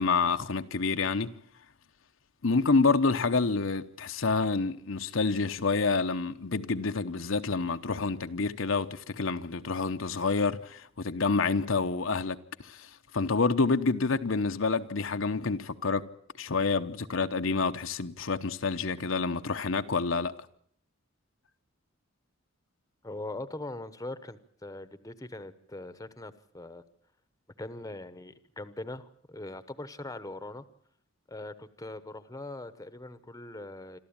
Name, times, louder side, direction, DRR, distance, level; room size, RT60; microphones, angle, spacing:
voice 1, 0.0-1.3 2.4-16.0 16.4-20.3, left 4 dB, 65° left, 0.9 m, -28 dB
voice 2, 23.0-26.8 27.6-30.6 31.3-34.0, left 2 dB, 15° left, 1.0 m, -41 dB
26.5 x 13.5 x 8.8 m
head